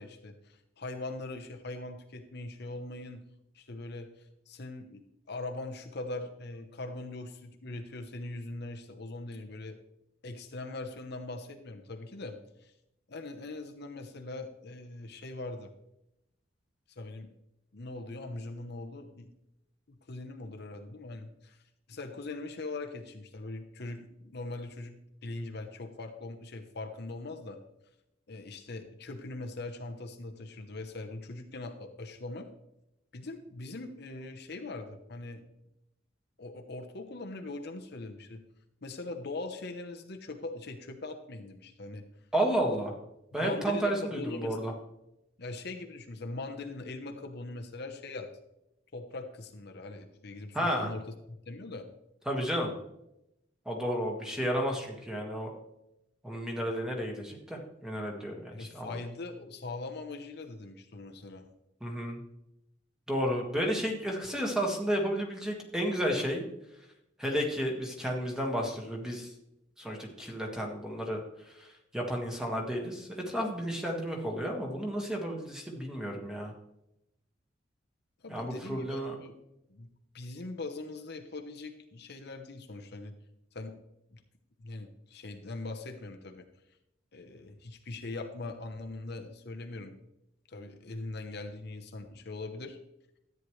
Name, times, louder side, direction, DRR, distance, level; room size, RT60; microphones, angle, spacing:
voice 1, 0.0-3.2 3.5-9.8 10.2-12.7 13.1-15.7 16.9-17.3 17.7-19.3 19.9-21.6 21.9-27.6 28.3-32.5 33.1-35.4 36.4-38.4 38.8-42.0 43.3-44.6 45.4-48.3 48.9-51.0 51.3-51.9 58.5-61.5 78.2-79.4 79.7-79.9 80.1-83.1 83.5-83.7 84.1-84.2 84.6-86.5 87.1-90.0 90.5-92.8, left 2 dB, 60° left, 5 dB, 0.9 m, -41 dB
voice 2, 42.3-42.9 43.3-44.7 50.5-50.9 52.3-52.7 53.7-55.5 56.2-59.0 61.8-62.2 63.1-66.4 67.2-69.3 69.8-76.5 78.3-79.2, equal, 5° right, 0 dB, 1.7 m, -32 dB
13.5 x 9.2 x 3.2 m, 0.85 s
head